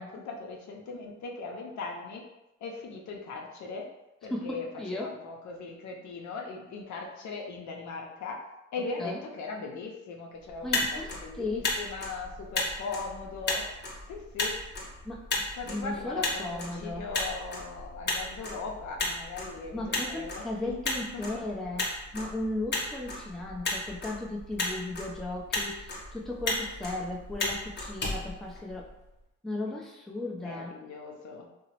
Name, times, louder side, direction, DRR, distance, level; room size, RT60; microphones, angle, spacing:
voice 1, 0.0-2.2 2.6-3.8 4.2-4.7 4.9-8.4 8.7-13.6 14.1-14.6 15.5-21.5 30.1-31.5, left 4 dB, 70° left, 0 dB, 0.6 m, -39 dB
voice 2, 4.3-5.1 9.0-9.2 10.6-11.6 15.0-15.2 15.7-17.1 19.7-21.9 22.1-28.8 29.4-30.7, left 2 dB, ahead, -2 dB, 0.4 m, -36 dB
Motor vehicle (road), 10.5-29.1, left 2 dB, 35° left, 0.8 m, -35 dB
2.8 x 2.0 x 2.8 m, 0.93 s
cardioid pair, 90°, 30 cm